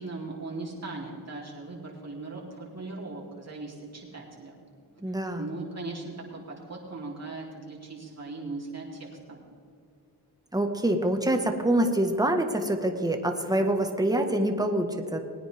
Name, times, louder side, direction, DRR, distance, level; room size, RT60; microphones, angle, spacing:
voice 1, 0.0-4.5 5.1-9.4, right 3 dB, 40° right, -4 dB, 3.5 m, -39 dB
voice 2, 5.0-5.5 10.5-15.2, right 1 dB, 10° right, 4 dB, 1.6 m, -26 dB
19.5 x 9.7 x 3.6 m, 2.5 s
cardioid pair, 50°, 39 cm